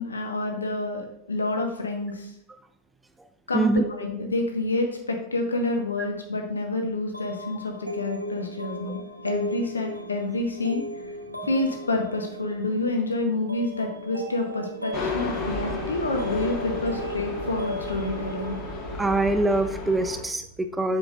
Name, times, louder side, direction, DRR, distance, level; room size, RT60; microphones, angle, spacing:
voice 1, 0.0-2.3 3.5-10.8 11.4-18.6, left 2 dB, 75° left, 4 dB, 0.7 m, -28 dB
voice 2, 3.5-3.9 19.0-21.0, right 2 dB, 10° right, 9 dB, 0.3 m, -24 dB
sound 1, 7.1-19.7, equal, 90° right, 0.6 m, -37 dB
sound 2, 14.9-20.2, left 2 dB, 40° left, 1.3 m, -33 dB
7.7 x 5.7 x 2.4 m, 0.77 s
figure-of-eight pair, 90°, 0 cm